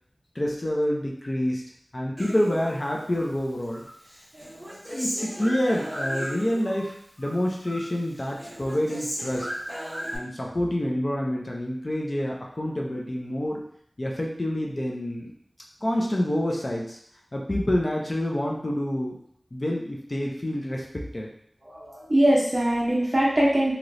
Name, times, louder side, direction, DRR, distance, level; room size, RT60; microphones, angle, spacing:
voice 1, 0.3-1.6 1.9-3.9 4.9-9.5 10.1-13.6 14.0-15.3 15.8-17.0 17.3-19.2 19.5-21.3, left 1 dB, 45° left, -1 dB, 0.6 m, -27 dB
Human voice, 2.2-3.3 3.7-6.9 7.2-10.2, equal, 10° right, 1.2 m, -35 dB
voice 2, 21.7-23.7, right 1 dB, 30° right, -6 dB, 0.7 m, -22 dB
3.1 x 2.9 x 2.6 m, 0.66 s
wide cardioid pair, 55°, 0 cm